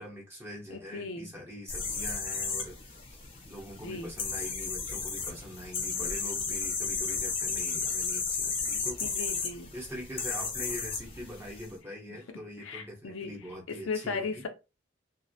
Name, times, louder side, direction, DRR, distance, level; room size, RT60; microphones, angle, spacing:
voice 1, 0.0-3.0 3.5-9.1 9.7-14.4, equal, 10° right, 0.7 m, -43 dB
voice 2, 0.7-1.3 3.8-4.1 9.0-9.7 12.6-13.3 13.7-14.5, left 4 dB, 80° left, 0.5 m, -36 dB
sound 1, 1.7-11.7, left 4 dB, 30° left, 0.6 m, -34 dB
2.4 x 2.0 x 2.6 m
head